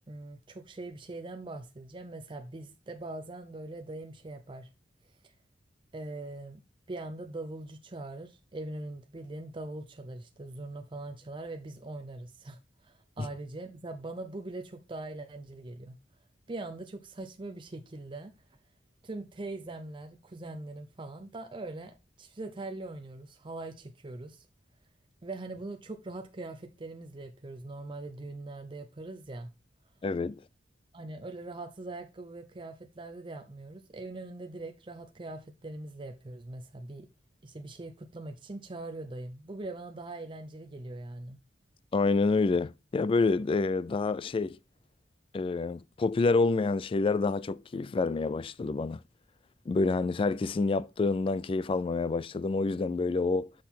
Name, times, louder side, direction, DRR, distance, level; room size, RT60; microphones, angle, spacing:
voice 1, 0.1-4.7 5.2-5.3 5.9-6.6 6.9-16.0 16.5-18.3 19.0-24.5 25.2-29.5 30.9-37.1 37.4-41.4, right 2 dB, 25° right, 0.6 m, -42 dB
voice 2, 30.0-30.4 41.9-44.6 45.3-49.0 49.7-53.5, left 3 dB, 30° left, 0.3 m, -28 dB
6.3 x 5.7 x 4.1 m
head